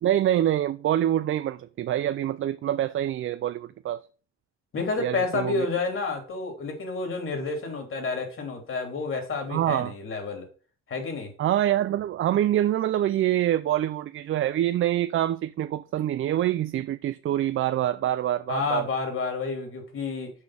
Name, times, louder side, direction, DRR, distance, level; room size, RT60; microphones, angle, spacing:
voice 1, 0.0-4.0 5.0-5.7 9.5-9.9 11.4-18.8, right 12 dB, 45° right, 0.4 m, -25 dB
voice 2, 4.7-10.5 10.9-11.3 18.5-20.3, left 4 dB, 45° left, 3.2 m, -30 dB
6.4 x 5.3 x 6.1 m
cardioid pair, 90°, 29 cm